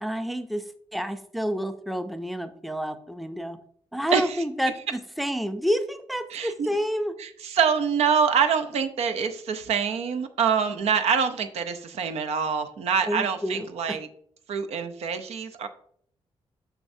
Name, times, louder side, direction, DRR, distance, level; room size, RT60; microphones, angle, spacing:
voice 1, 0.0-3.6 3.9-7.1 13.0-14.0, equal, ahead, 9 dB, 0.4 m, -29 dB
voice 2, 4.1-4.4 6.3-6.7 7.2-14.1 14.5-15.7, right 6 dB, 85° right, 8 dB, 0.7 m, -25 dB
6.6 x 6.1 x 2.7 m, 0.62 s
cardioid pair, 120°, 11 cm